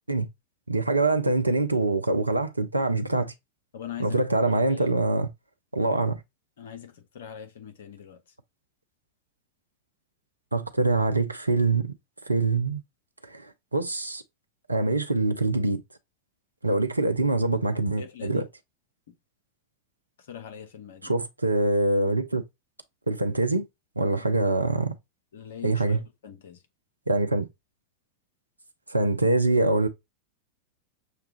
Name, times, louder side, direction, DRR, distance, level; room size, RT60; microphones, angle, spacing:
voice 1, 0.7-3.3 4.0-5.3 5.7-6.2 10.5-11.9 12.3-12.8 13.3-14.2 14.7-15.8 16.6-18.5 21.0-22.4 23.1-23.6 24.0-24.9 25.6-26.0 27.1-27.5 28.9-29.9, right 2 dB, 85° right, 0.5 m, -24 dB
voice 2, 3.7-4.2 4.5-4.9 6.6-8.2 18.0-18.5 19.1-19.2 20.3-21.1 25.3-26.6, left 9 dB, 60° left, 0.9 m, -42 dB
6.4 x 2.3 x 3.0 m
figure-of-eight pair, 90°, 0 cm